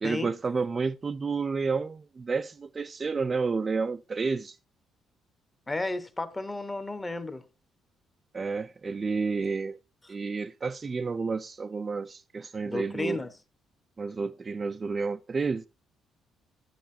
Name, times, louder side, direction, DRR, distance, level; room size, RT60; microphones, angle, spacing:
voice 1, 0.0-4.6 8.3-9.8 10.1-13.2 14.0-15.7, right 4 dB, 30° right, 0.3 m, -30 dB
voice 2, 5.7-7.4 12.6-13.3, left 2 dB, 20° left, 0.9 m, -33 dB
10.5 x 8.2 x 2.7 m
cardioid pair, 105°, 0 cm